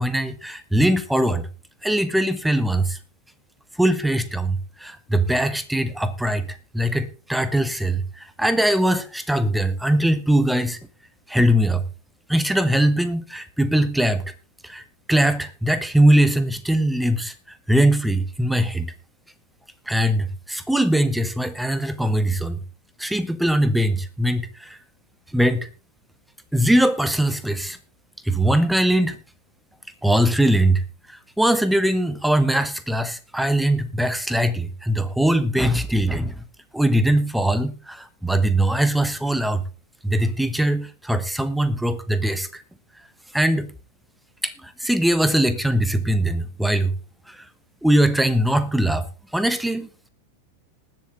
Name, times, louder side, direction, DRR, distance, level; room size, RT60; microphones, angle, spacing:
voice 1, 0.0-1.5 1.8-3.0 3.8-10.8 11.3-11.9 12.3-14.2 14.6-14.8 15.1-18.9 19.9-22.6 23.0-24.8 25.3-25.7 26.5-27.8 28.2-29.2 30.0-30.8 31.1-36.4 36.7-39.6 40.0-42.6 43.3-43.7 44.4-46.9 47.3-47.5 47.8-49.1 49.3-50.1, right 1 dB, 5° right, 14 dB, 1.1 m, -21 dB
20.0 x 7.4 x 3.7 m, 0.32 s
figure-of-eight pair, 90°, 0 cm